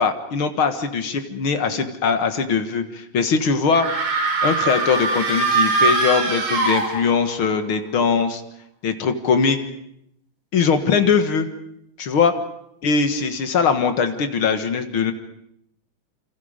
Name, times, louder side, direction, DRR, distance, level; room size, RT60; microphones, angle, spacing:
voice 1, 0.0-4.0 4.4-8.4 8.8-9.6 10.5-11.5 12.0-12.3 12.8-15.1, left 5 dB, 50° left, 7 dB, 2.1 m, -21 dB
sound 1, 3.7-7.4, right 3 dB, 90° right, 5.1 m, -22 dB
28.0 x 26.5 x 5.2 m, 0.77 s
omnidirectional pair, 3.6 m